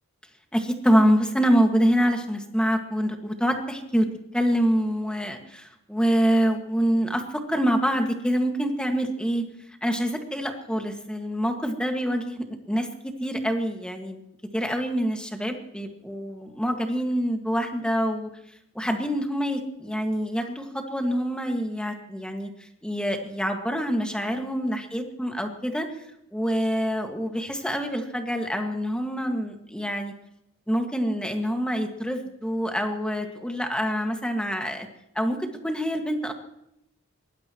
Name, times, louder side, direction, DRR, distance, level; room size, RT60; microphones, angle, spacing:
voice 1, 0.5-4.1 4.3-9.4 9.8-14.2 14.5-18.3 18.8-25.9 26.3-30.1 30.7-34.9 35.2-36.3, equal, 5° left, 3 dB, 1.8 m, -26 dB
23.0 x 19.5 x 3.1 m, 0.80 s
head